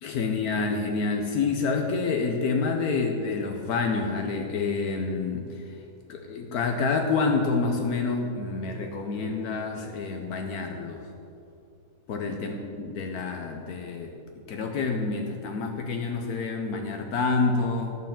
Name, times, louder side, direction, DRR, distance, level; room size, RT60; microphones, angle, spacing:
voice 1, 0.0-5.7 6.1-11.0 12.1-14.1 14.5-18.0, left 4 dB, 75° left, 3 dB, 1.2 m, -28 dB
11.5 x 4.6 x 7.3 m, 2.6 s
omnidirectional pair, 1.7 m